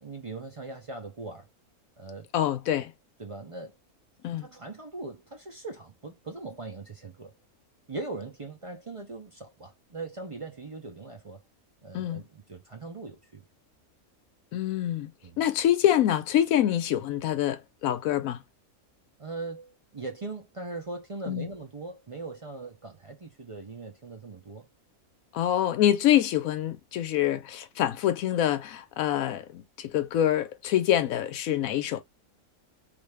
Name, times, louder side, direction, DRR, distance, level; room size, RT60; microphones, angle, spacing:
voice 1, 0.0-1.5 2.0-2.3 3.2-3.8 4.4-7.3 7.9-11.4 11.8-13.4 15.2-15.4 19.2-24.7, right 3 dB, 55° right, 0.3 m, -40 dB
voice 2, 2.3-2.9 4.2-4.5 11.9-12.2 14.5-15.1 15.4-18.4 21.3-21.5 25.3-32.0, left 11 dB, 70° left, 1.0 m, -25 dB
3.3 x 2.6 x 3.3 m
omnidirectional pair, 1.6 m